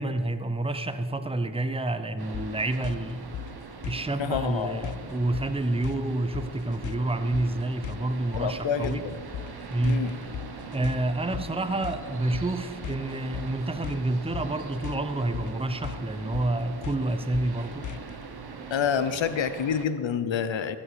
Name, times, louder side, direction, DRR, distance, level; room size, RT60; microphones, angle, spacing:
voice 1, 0.0-3.4 3.8-9.0 9.7-10.1 10.7-17.9, right 2 dB, 15° right, 9 dB, 0.9 m, -28 dB
sound 1, 2.2-19.9, right 4 dB, 60° right, 1.4 m, -42 dB
sound 2, 2.3-18.2, left 11 dB, 45° left, 0.5 m, -39 dB
voice 2, 4.2-4.9 8.3-9.2 9.8-10.2 18.7-20.8, left 7 dB, 85° left, 12 dB, 0.9 m, -28 dB
17.0 x 7.5 x 6.9 m, 2.3 s
cardioid pair, 65°, 44 cm